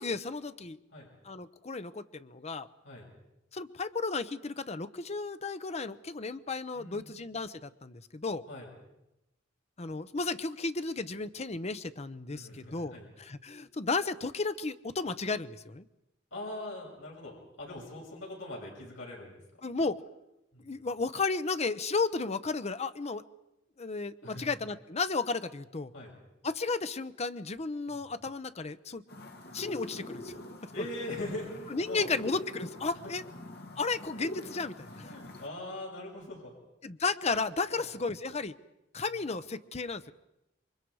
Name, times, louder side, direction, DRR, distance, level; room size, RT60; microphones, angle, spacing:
voice 1, 0.0-0.8 1.2-2.7 3.5-8.4 9.8-15.8 19.6-20.0 20.6-23.2 23.8-25.9 26.4-29.0 29.5-30.4 31.7-33.2 33.8-35.1 36.8-38.5 38.9-40.1, left 4 dB, 35° left, 12 dB, 0.8 m, -34 dB
voice 2, 6.7-7.1 8.5-8.7 12.3-13.1 16.3-19.4 20.5-20.6 24.2-24.4 25.9-26.1 27.9-28.0 29.5-29.7 30.7-32.1 33.0-33.1 34.9-36.5 37.7-37.9, left 1 dB, 75° left, -2 dB, 6.7 m, -41 dB
sound 1, 29.1-35.5, left 1 dB, 55° left, 2.2 m, -45 dB
28.0 x 23.5 x 4.8 m, 0.91 s
head